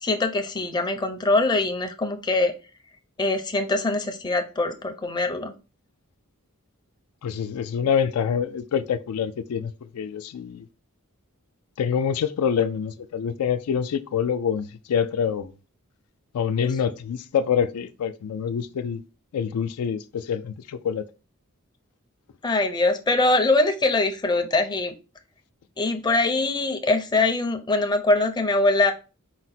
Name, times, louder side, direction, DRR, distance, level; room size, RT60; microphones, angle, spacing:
voice 1, 0.0-2.5 3.2-5.5 22.4-24.9 25.8-28.9, left 2 dB, 20° left, 0.5 m, -23 dB
voice 2, 7.2-10.7 11.8-15.5 16.3-19.0 19.3-21.0, left 7 dB, 90° left, 0.4 m, -26 dB
4.8 x 2.1 x 4.1 m
head